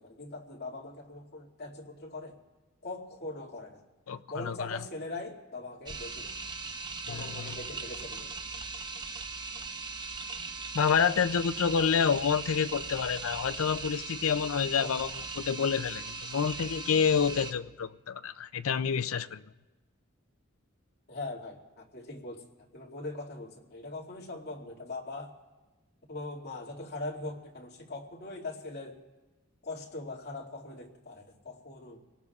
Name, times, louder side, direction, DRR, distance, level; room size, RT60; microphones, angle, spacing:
voice 1, 0.0-2.4 2.8-3.8 4.3-6.3 7.1-8.3 14.8-14.9 21.1-22.4 22.7-25.3 26.1-29.0 29.6-32.0, left 2 dB, 50° left, -2 dB, 2.4 m, -41 dB
voice 2, 4.1-4.8 7.1-7.6 10.7-15.1 15.4-19.4, left 6 dB, 90° left, 14 dB, 0.5 m, -28 dB
sound 1, 5.9-17.5, right 4 dB, 20° right, 0.7 m, -39 dB
28.5 x 18.0 x 2.4 m, 1.2 s
head